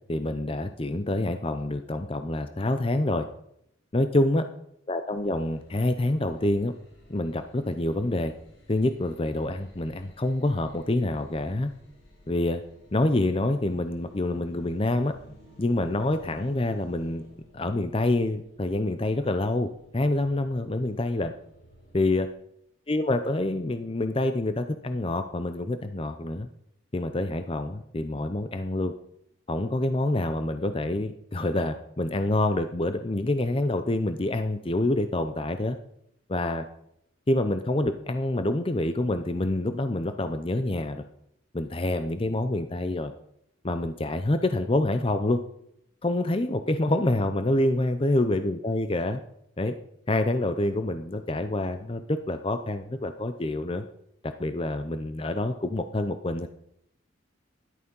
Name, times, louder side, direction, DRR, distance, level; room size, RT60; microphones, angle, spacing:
voice 1, 0.1-3.3 3.9-4.5 4.9-6.7 7.1-8.3 8.7-11.7 12.3-12.6 12.9-15.1 15.6-17.2 17.5-19.7 19.9-21.3 21.9-22.3 22.9-26.5 26.9-28.9 29.5-35.8 36.3-36.7 37.3-41.0 41.5-43.1 43.6-45.4 46.0-49.2 49.6-49.7 50.1-53.8 54.2-56.5, left 1 dB, 25° left, 9 dB, 0.6 m, -27 dB
sound 1, 5.1-22.2, equal, 80° left, 5.1 m, -55 dB
13.5 x 11.5 x 5.4 m, 0.75 s
head